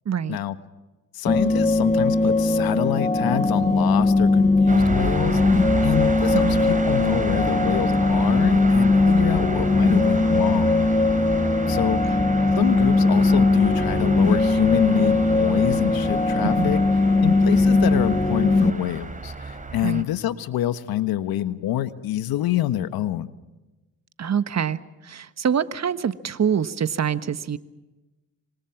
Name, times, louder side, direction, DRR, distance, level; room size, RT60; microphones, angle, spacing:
voice 1, 0.0-0.4 6.3-6.6 16.4-16.8 19.8-20.0 24.2-27.6, right 7 dB, 45° right, 13 dB, 1.5 m, -25 dB
voice 2, 1.1-10.9 11.7-12.0 12.5-16.8 17.2-23.3, left 12 dB, 70° left, 12 dB, 1.5 m, -26 dB
sound 1, 1.3-18.7, left 3 dB, 20° left, 2.1 m, -20 dB
sound 2, 4.7-20.0, right 3 dB, 20° right, 4.8 m, -31 dB
26.0 x 26.0 x 6.0 m, 1.1 s
hypercardioid pair, 55°, 37 cm